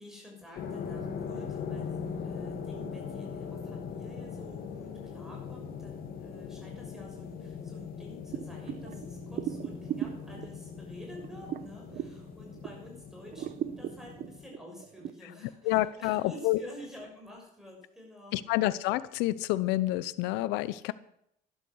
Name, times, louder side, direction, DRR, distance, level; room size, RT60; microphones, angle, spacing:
voice 1, 0.0-18.4, left 1 dB, 5° right, -1 dB, 6.1 m, -49 dB
sound 1, 0.6-14.5, left 6 dB, 60° left, 2.9 m, -40 dB
sound 2, 8.3-12.9 13.3-15.1, right 11 dB, 55° right, 1.0 m, -38 dB
voice 2, 15.6-16.6 18.3-20.9, left 17 dB, 85° left, 17 dB, 0.7 m, -28 dB
12.0 x 11.5 x 6.4 m, 0.74 s
cardioid pair, 100°, 17 cm